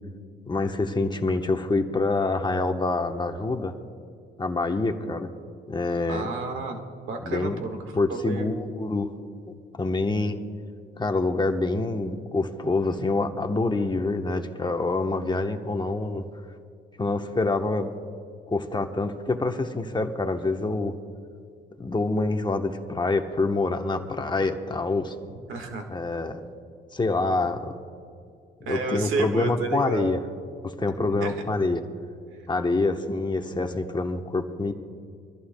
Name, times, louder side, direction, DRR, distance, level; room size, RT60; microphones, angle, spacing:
voice 1, 0.5-3.7 4.4-5.3 5.7-6.3 7.2-7.6 7.9-9.1 9.5-10.4 10.9-16.2 17.0-17.9 18.5-20.9 21.8-25.1 25.9-26.5 26.9-27.7 28.7-30.2 30.6-31.8 32.5-34.7, left 3 dB, 20° left, 5 dB, 1.0 m, -26 dB
voice 2, 6.1-8.6 25.5-25.9 28.6-30.1 31.2-31.4 32.3-32.5, right 3 dB, 80° right, 4 dB, 1.7 m, -31 dB
25.0 x 14.5 x 2.3 m, 2.3 s
cardioid pair, 90°, 20 cm